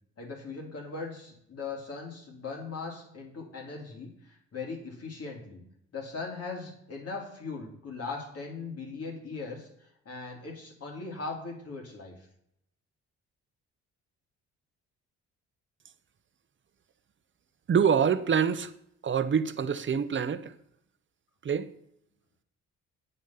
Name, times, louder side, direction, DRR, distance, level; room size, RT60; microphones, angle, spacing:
voice 1, 0.2-5.6 5.9-12.1, left 4 dB, 55° left, 3.1 m, -39 dB
voice 2, 17.7-18.7 19.0-20.5 21.4-21.7, right 7 dB, 40° right, 0.9 m, -25 dB
9.1 x 8.4 x 5.8 m
cardioid pair, 90°, 30 cm